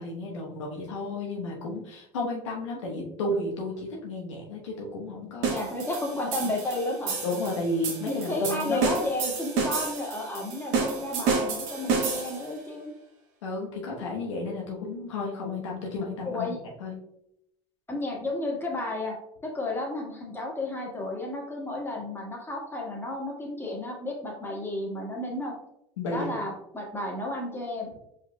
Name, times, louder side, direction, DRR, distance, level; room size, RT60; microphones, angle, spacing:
voice 1, 0.0-5.6 7.2-8.8 13.4-17.0 26.0-26.3, left 2 dB, 90° left, -2 dB, 1.0 m, -32 dB
sound 1, 5.4-12.5, right 4 dB, 65° right, 1.5 m, -30 dB
voice 2, 5.5-7.2 8.1-12.9 16.2-16.6 17.9-19.1 19.4-25.5 26.1-27.9, left 2 dB, 15° left, -2 dB, 1.7 m, -32 dB
4.8 x 4.4 x 2.2 m, 0.78 s
hypercardioid pair, 80°, 15 cm